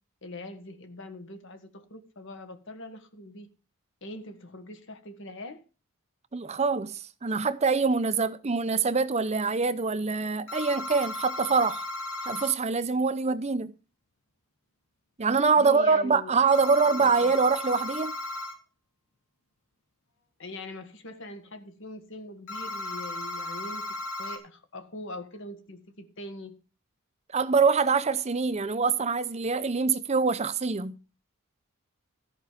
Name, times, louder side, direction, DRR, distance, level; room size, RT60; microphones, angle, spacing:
voice 1, 0.2-3.5 4.0-5.6 15.6-16.3 16.6-17.3 20.4-26.5, left 1 dB, 60° left, 1.7 m, -42 dB
voice 2, 6.3-11.9 12.2-13.7 15.2-18.2 27.3-30.9, right 4 dB, 30° right, 0.6 m, -25 dB
sound 1, 10.5-12.5 16.5-18.5 22.5-24.4, left 2 dB, 75° left, 4.0 m, -35 dB
14.0 x 5.3 x 7.4 m
head